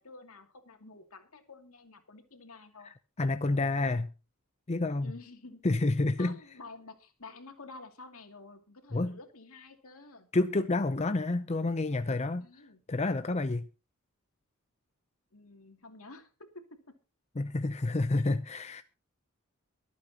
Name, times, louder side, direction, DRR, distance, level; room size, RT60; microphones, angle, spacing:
voice 1, 0.0-2.9 5.0-5.6 6.2-10.3 12.4-12.8 15.3-16.9 18.2-18.4, left 3 dB, 70° left, 2.6 m, -50 dB
voice 2, 2.8-4.1 4.7-5.1 5.6-6.3 8.9-9.2 10.3-12.5 12.9-13.7 17.4-18.8, left 2 dB, 30° left, 0.6 m, -29 dB
24.0 x 8.4 x 2.9 m
head